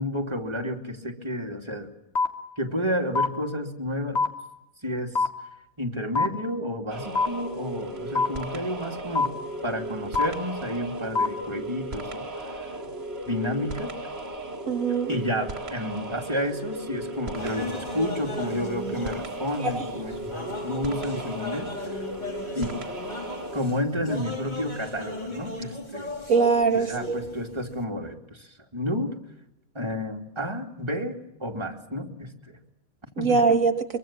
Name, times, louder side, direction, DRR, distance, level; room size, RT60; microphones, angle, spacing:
voice 1, 0.0-1.9 2.6-4.2 4.8-5.3 5.8-9.3 9.6-12.7 13.3-13.9 15.1-22.0 22.5-22.8 23.5-26.1 26.7-29.1 29.7-32.6 33.2-33.4, equal, 20° right, 1 dB, 2.6 m, -31 dB
sound 1, 2.2-2.3 3.2-3.3 4.2-4.3 5.2-5.3 6.2-6.3 7.2-7.3 8.2-8.3 9.2-9.3 10.2-10.3 11.2-11.3, left 3 dB, 50° left, 2.3 m, -21 dB
sound 2, 6.9-23.7, right 1 dB, 50° right, 2.2 m, -36 dB
voice 2, 14.7-15.1 19.6-19.8 26.3-27.2 33.2-33.7, right 5 dB, 75° right, 6 dB, 1.8 m, -22 dB
sound 3, 17.4-27.8, left 2 dB, 35° left, 3.1 m, -37 dB
23.5 x 23.0 x 7.4 m, 0.86 s
omnidirectional pair, 1.4 m